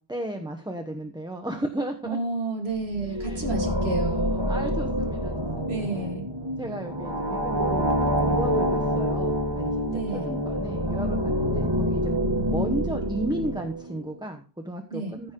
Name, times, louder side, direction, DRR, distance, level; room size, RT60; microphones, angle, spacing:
voice 1, 0.1-2.2 3.0-3.8 4.5-5.8 6.6-9.7 10.1-12.1 12.4-15.3, right 1 dB, 5° right, 5 dB, 0.9 m, -34 dB
voice 2, 2.0-4.5 5.7-6.3 9.9-10.4 14.9-15.2, right 3 dB, 75° right, 1 dB, 2.3 m, -31 dB
sound 1, 2.8-14.0, equal, 25° right, 1.3 m, -27 dB
14.5 x 6.1 x 3.8 m, 0.36 s
omnidirectional pair, 1.1 m